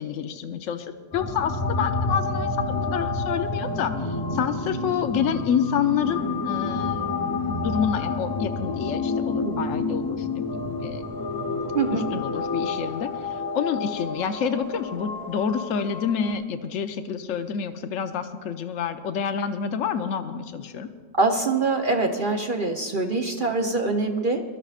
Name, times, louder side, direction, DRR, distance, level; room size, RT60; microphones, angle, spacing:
voice 1, 0.0-3.9 4.3-7.0 7.5-11.0 11.9-13.1 13.5-20.9, left 7 dB, 80° left, 8 dB, 1.1 m, -28 dB
sound 1, 1.1-16.3, left 3 dB, 20° left, 0.9 m, -29 dB
voice 2, 11.7-12.1 21.2-24.4, right 3 dB, 45° right, 1 dB, 0.9 m, -24 dB
22.5 x 13.0 x 2.5 m, 1.5 s
omnidirectional pair, 1.3 m